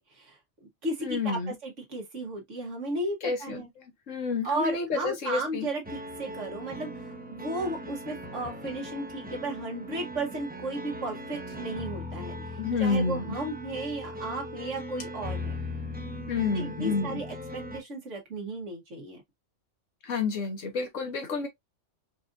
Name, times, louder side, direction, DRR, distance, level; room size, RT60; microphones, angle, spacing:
voice 1, 0.1-3.7 4.4-12.4 12.8-15.6 16.5-19.2, right 2 dB, 75° right, 1.5 m, -34 dB
voice 2, 1.0-1.5 3.2-3.6 4.1-5.7 12.5-13.3 16.3-17.2 20.0-21.5, left 4 dB, 90° left, 1.5 m, -29 dB
sound 1, 5.8-17.8, left 1 dB, 10° right, 0.5 m, -39 dB
4.7 x 2.6 x 2.3 m
omnidirectional pair, 1.3 m